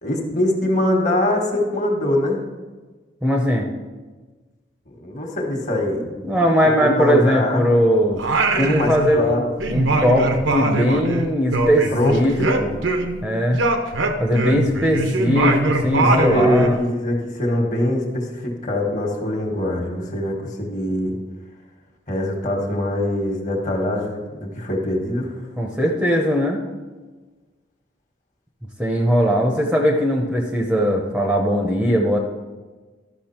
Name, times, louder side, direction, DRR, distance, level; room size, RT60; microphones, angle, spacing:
voice 1, 0.0-2.4 4.9-6.5 6.8-7.7 8.6-9.5 11.9-12.5 15.9-21.1 22.1-25.5, left 1 dB, 40° left, 2 dB, 1.5 m, -23 dB
voice 2, 3.2-3.7 6.2-8.2 8.6-9.4 9.7-12.8 13.2-13.6 14.2-16.8 25.6-26.6 28.8-32.2, equal, 5° right, 1 dB, 0.7 m, -19 dB
Singing, 8.2-9.3 9.6-13.2 13.5-16.8, right 2 dB, 85° right, 0.9 m, -22 dB
12.0 x 6.1 x 4.4 m, 1.3 s
head